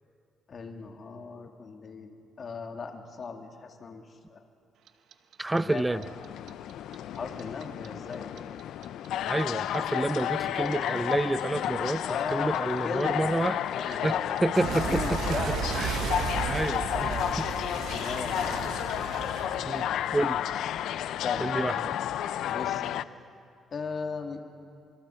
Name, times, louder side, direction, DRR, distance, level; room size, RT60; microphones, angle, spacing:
voice 1, 0.5-4.0 4.3-4.5 5.5-6.0 7.1-8.3 12.0-13.4 13.7-14.4 14.9-15.8 16.3-16.6 16.9-17.5 17.9-18.7 21.2-21.5 22.5-23.0 23.7-24.4, left 5 dB, 50° left, 3 dB, 2.2 m, -37 dB
Clock, 4.9-7.9 8.1-11.1 11.4-20.3, right 8 dB, 75° right, 1.0 m, -34 dB
voice 2, 5.4-6.0 9.3-15.4 15.8-15.9 16.4-17.1 17.4-17.5 19.6-19.9 20.1-20.4 21.4-22.0, right 2 dB, 15° right, 15 dB, 0.6 m, -29 dB
sound 1, 5.9-23.0, left 11 dB, 80° left, 0.5 m, -31 dB
26.0 x 24.0 x 4.5 m, 2.4 s
cardioid pair, 90°, 0 cm